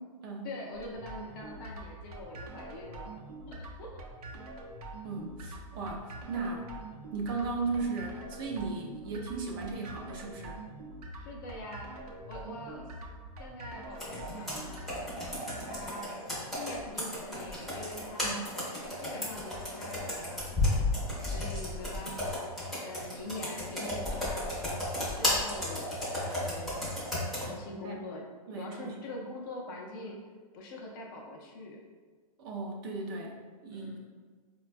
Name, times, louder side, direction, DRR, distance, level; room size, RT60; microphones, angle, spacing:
voice 1, 0.4-3.1 3.5-4.0 4.3-4.4 11.2-11.9 12.3-12.9 13.4-14.9 15.5-16.1 16.5-18.4 19.0-20.8 21.3-22.4 22.8-26.8 27.4-28.2 28.6-30.2 30.5-31.8 33.7-34.0, left 2 dB, 35° left, -1 dB, 0.4 m, -44 dB
sound 1, 0.7-15.9, right 2 dB, 80° right, 0.6 m, -45 dB
voice 2, 5.0-6.7 7.1-10.6 18.2-18.5 27.8-28.0 28.5-29.0 32.4-34.0, right 4 dB, 35° right, 0 dB, 0.4 m, -36 dB
Computer keyboard, 14.0-27.5, left 1 dB, ahead, 0.7 m, -34 dB
4.1 x 2.2 x 2.4 m, 1.5 s
hypercardioid pair, 160°, 19 cm